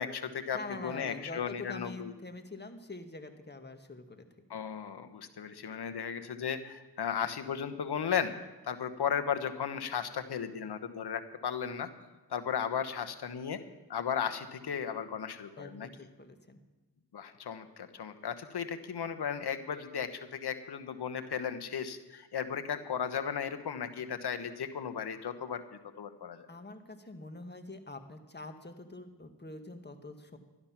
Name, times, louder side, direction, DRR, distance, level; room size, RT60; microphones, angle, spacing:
voice 1, 0.0-2.1 4.5-8.3 8.6-11.9 12.3-13.6 13.9-15.9 17.1-26.5, left 7 dB, 75° left, 9 dB, 1.2 m, -35 dB
voice 2, 0.5-4.6 15.6-16.6 26.5-30.4, left 2 dB, 25° left, 7 dB, 1.5 m, -45 dB
12.0 x 12.0 x 5.9 m, 1.2 s
cardioid pair, 55°, 40 cm